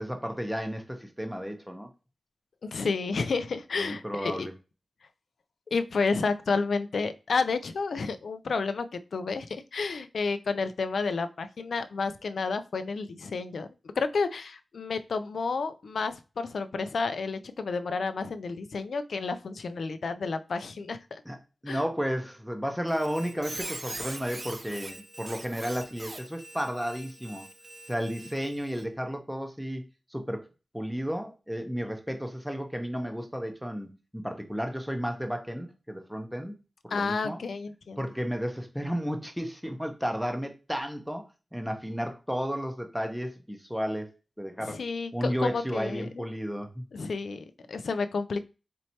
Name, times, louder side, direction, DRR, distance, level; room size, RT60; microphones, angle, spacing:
voice 1, 0.0-1.9 3.8-4.5 21.3-21.4 21.6-27.5 27.9-29.8 30.1-30.4 30.7-36.5 36.8-37.4 38.0-41.3 41.5-44.1 44.4-44.8 45.1-46.8, equal, ahead, 4 dB, 0.6 m, -33 dB
voice 2, 2.6-4.5 5.7-13.7 14.0-21.2 21.7-21.8 36.9-38.0 44.6-46.2 46.9-48.5, left 4 dB, 80° left, 10 dB, 0.4 m, -31 dB
Squeak, 22.9-28.8, right 2 dB, 35° right, 0.7 m, -42 dB
4.2 x 3.1 x 2.8 m, 0.31 s
wide cardioid pair, 105°, 0 cm